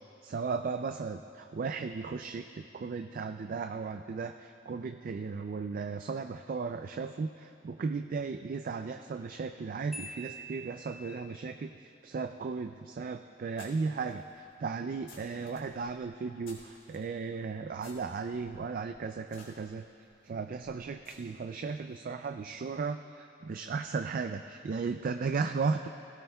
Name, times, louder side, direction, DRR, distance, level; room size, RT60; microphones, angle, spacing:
voice 1, 0.2-19.8 20.2-25.9, right 4 dB, 45° right, 7 dB, 0.3 m, -36 dB
Marimba xylophone, 9.9-11.3, right 2 dB, ahead, 1.1 m, -45 dB
sound 1, 13.6-17.1 17.8-21.7, left 3 dB, 75° left, 3.0 m, -57 dB
19.5 x 16.5 x 2.3 m, 2.8 s
head